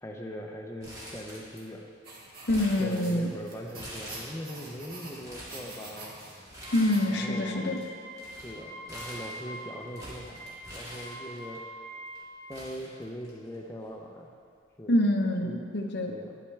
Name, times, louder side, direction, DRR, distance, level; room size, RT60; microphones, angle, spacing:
voice 1, 0.0-1.9 2.8-6.1 7.1-7.8 8.4-11.6 12.5-14.3 14.8-15.0 15.4-15.7 16.1-16.4, equal, 15° left, 0 dB, 0.5 m, -41 dB
Crumpling crinkling, 0.8-1.8 2.1-3.3 3.8-4.6 5.0-5.6 6.5-7.2 7.5-11.6 12.2-12.3 12.5-13.6 13.9-14.0 14.9-15.2, equal, 15° right, 2.0 m, -45 dB
sound 1, 2.0-7.0, right 2 dB, 45° right, 1.5 m, -46 dB
voice 2, 2.5-3.3 6.7-7.8 14.9-16.1, left 1 dB, 55° left, 4 dB, 0.7 m, -26 dB
Wind instrument woodwind instrument, 6.6-12.5, equal, 65° right, 2.0 m, -44 dB
9.8 x 8.6 x 3.3 m, 2.2 s
head